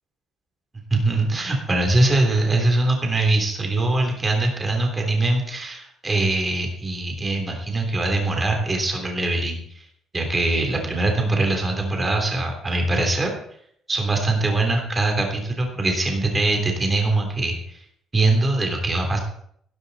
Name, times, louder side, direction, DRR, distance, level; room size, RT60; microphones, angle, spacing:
voice 1, 0.9-9.8 10.1-13.3 13.9-17.8 18.1-19.2, right 2 dB, 15° right, 2 dB, 3.2 m, -22 dB
16.0 x 13.5 x 4.2 m, 0.67 s
cardioid pair, 170°, 0 cm